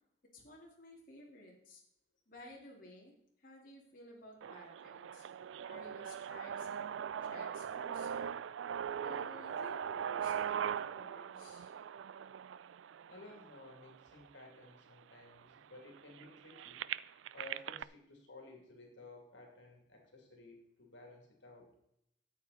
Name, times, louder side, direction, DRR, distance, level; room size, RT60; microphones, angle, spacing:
voice 1, 0.3-1.8 2.3-3.1 3.4-5.3 5.7-6.9 7.2-8.4 9.0-11.7, left 1 dB, 50° left, -2 dB, 2.5 m, -55 dB
sound 1, 4.4-14.4 15.0-15.1 15.4-17.8, right 8 dB, 85° right, 0.3 m, -41 dB
voice 2, 13.0-16.8 17.3-21.7, left 2 dB, 80° left, 1 dB, 2.8 m, -55 dB
13.0 x 8.3 x 4.2 m, 0.77 s
head